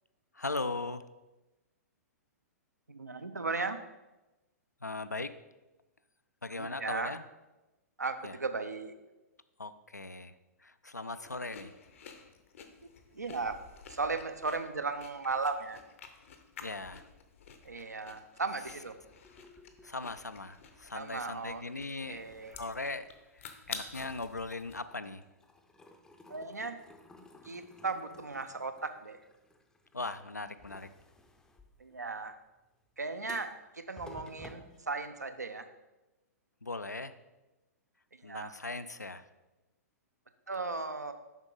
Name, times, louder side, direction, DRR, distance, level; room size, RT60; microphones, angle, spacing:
voice 1, 0.3-1.0 4.8-5.3 6.4-7.2 8.2-8.4 9.6-11.8 16.6-17.1 19.8-22.3 22.5-23.1 23.3-25.2 29.9-30.9 36.6-37.1 38.2-39.2, left 3 dB, 85° left, 11 dB, 0.4 m, -39 dB
voice 2, 2.9-3.8 6.5-7.1 8.0-8.9 13.1-13.6 13.9-15.8 17.6-18.9 20.9-21.6 22.1-22.6 26.3-26.8 27.4-29.2 31.8-32.4 33.0-35.7 38.1-38.5 40.5-41.1, right 4 dB, 80° right, 9 dB, 0.6 m, -36 dB
sound 1, 11.2-24.8, left 6 dB, 55° left, 0.7 m, -50 dB
sound 2, 18.9-21.4 21.8-23.6 23.9-35.6, left 2 dB, 5° left, 0.5 m, -56 dB
7.2 x 5.1 x 3.8 m, 1.1 s
figure-of-eight pair, 110°, 9 cm